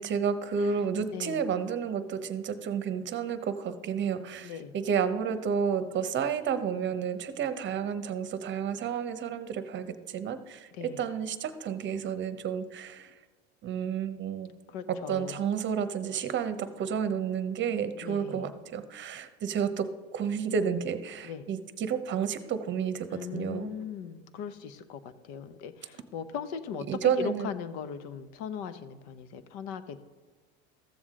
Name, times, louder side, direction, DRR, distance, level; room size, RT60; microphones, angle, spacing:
voice 1, 0.0-13.1 13.6-14.5 14.9-23.7 26.9-27.5, right 7 dB, 35° right, 10 dB, 0.9 m, -31 dB
voice 2, 1.1-1.5 4.4-4.7 10.7-11.0 14.7-15.4 18.0-18.5 21.2-21.5 23.1-30.0, left 7 dB, 65° left, 12 dB, 0.9 m, -39 dB
14.0 x 7.2 x 3.7 m, 1.4 s
supercardioid pair, 100°, 33 cm